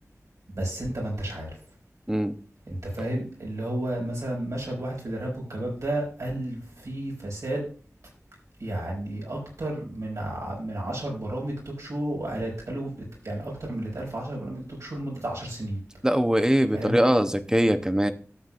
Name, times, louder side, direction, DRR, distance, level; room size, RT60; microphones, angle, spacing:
voice 1, 0.5-1.5 2.7-7.7 8.6-12.9 13.2-15.8 16.7-17.0, right 1 dB, 80° right, -1 dB, 5.5 m, -32 dB
voice 2, 16.0-18.1, equal, 10° right, 9 dB, 0.9 m, -22 dB
13.0 x 8.0 x 2.5 m, 0.40 s
wide cardioid pair, 55°, 5 cm